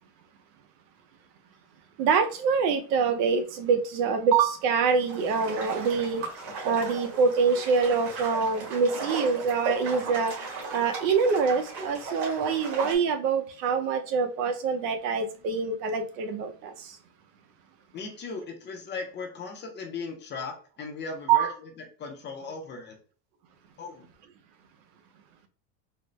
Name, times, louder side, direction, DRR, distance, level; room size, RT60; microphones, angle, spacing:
voice 1, 2.0-6.2 6.6-10.3 10.7-17.0 21.3-21.5, right 5 dB, 85° right, 0.8 m, -25 dB
sound 1, 4.8-13.0, right 3 dB, 55° right, 1.7 m, -36 dB
voice 2, 17.9-21.5 21.8-23.0 23.8-24.1, left 4 dB, 25° left, 0.5 m, -37 dB
4.0 x 2.0 x 3.1 m
supercardioid pair, 150°, 48 cm